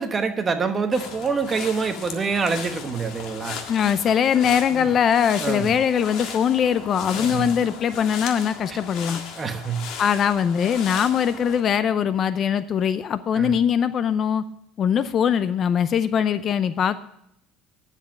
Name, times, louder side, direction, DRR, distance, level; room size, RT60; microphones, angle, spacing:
voice 1, 0.0-3.6 4.7-4.9 5.4-5.7 7.1-7.5 8.7-8.8 9.4-9.9 13.3-13.5, right 5 dB, 25° right, 7 dB, 1.1 m, -26 dB
sound 1, 0.9-11.6, left 6 dB, 55° left, 1.7 m, -37 dB
voice 2, 3.7-9.2 10.0-14.4 14.8-17.0, left 8 dB, 35° left, 13 dB, 0.5 m, -21 dB
10.5 x 7.4 x 7.4 m, 0.74 s
cardioid pair, 140°, 0 cm